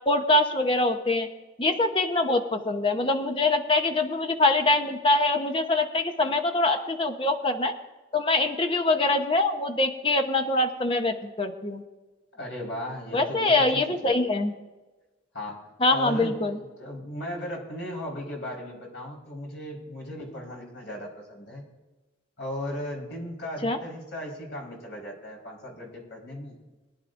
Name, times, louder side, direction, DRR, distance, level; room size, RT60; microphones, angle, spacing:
voice 1, 0.1-1.3 1.6-7.7 8.1-11.8 13.1-14.5 15.8-16.6 23.6-23.8, left 2 dB, 25° left, 6 dB, 0.9 m, -24 dB
voice 2, 12.3-14.1 15.3-21.6 22.4-26.5, left 1 dB, 70° left, -2 dB, 4.7 m, -37 dB
22.5 x 11.0 x 2.6 m, 1.1 s
head